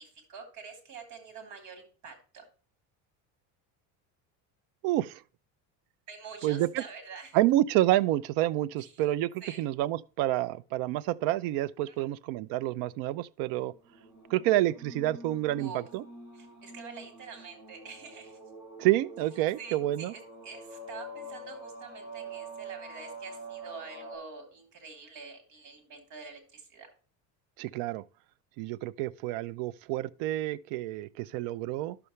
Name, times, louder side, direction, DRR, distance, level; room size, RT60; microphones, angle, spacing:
voice 1, 0.0-2.5 6.1-7.4 8.8-9.0 9.4-9.6 11.9-12.1 15.6-15.9 16.3-18.4 19.6-26.9, right 5 dB, 50° right, 3.7 m, -46 dB
voice 2, 4.8-5.2 6.4-6.8 7.3-13.7 14.3-16.0 18.8-20.1 27.6-28.0 28.6-32.0, right 15 dB, 70° right, 0.6 m, -28 dB
sound 1, 13.8-24.2, right 2 dB, 10° right, 4.7 m, -46 dB
11.0 x 6.9 x 3.2 m
cardioid pair, 175°, 37 cm